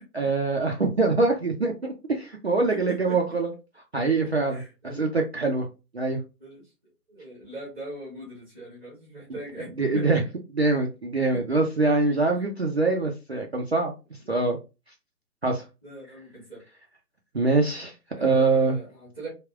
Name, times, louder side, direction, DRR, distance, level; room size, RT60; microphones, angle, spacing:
voice 1, 0.1-3.5 3.9-5.7 5.9-6.2 9.3-9.4 9.8-10.2 10.5-13.9 14.3-14.6 15.4-15.6 17.3-18.8, right 3 dB, 45° right, 0 dB, 0.4 m, -24 dB
voice 2, 2.7-3.2 4.2-5.0 6.4-6.6 7.1-10.1 11.3-11.4 15.8-16.6 18.1-19.3, right 2 dB, ahead, -9 dB, 0.7 m, -40 dB
3.4 x 2.3 x 2.3 m, 0.28 s
figure-of-eight pair, 140°, 48 cm